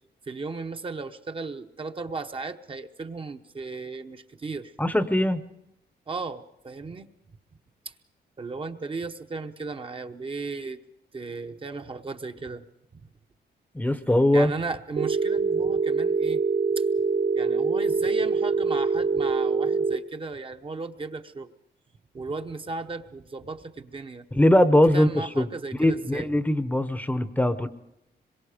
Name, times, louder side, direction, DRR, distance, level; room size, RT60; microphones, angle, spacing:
voice 1, 0.3-4.7 6.1-7.1 7.9-8.0 8.4-10.8 11.1-12.7 14.3-16.4 16.8-16.9 17.3-21.5 22.1-24.3 24.9-26.3, right 3 dB, 30° right, 7 dB, 1.0 m, -35 dB
voice 2, 4.8-5.4 13.7-14.5 24.3-25.5 25.8-27.7, left 1 dB, 10° left, 11 dB, 0.8 m, -21 dB
Telephone, 15.0-20.0, right 4 dB, 55° right, 1.6 m, -24 dB
26.0 x 22.5 x 5.1 m, 0.85 s
wide cardioid pair, 135°, 18 cm